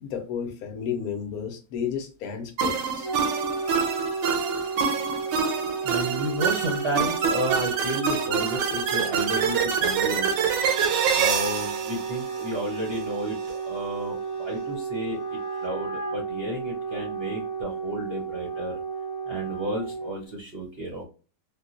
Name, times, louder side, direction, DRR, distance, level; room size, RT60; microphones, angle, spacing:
voice 1, 0.0-3.1, left 7 dB, 65° left, 4 dB, 1.1 m, -32 dB
sound 1, 2.6-13.0, right 6 dB, 85° right, 1.3 m, -26 dB
Wind instrument woodwind instrument, 2.8-20.3, right 5 dB, 5° right, 0.7 m, -33 dB
voice 2, 5.8-10.5 11.2-13.4 13.6-18.7 19.3-21.0, right 1 dB, 50° right, -1 dB, 0.8 m, -32 dB
3.6 x 2.3 x 2.4 m, 0.34 s
omnidirectional pair, 1.9 m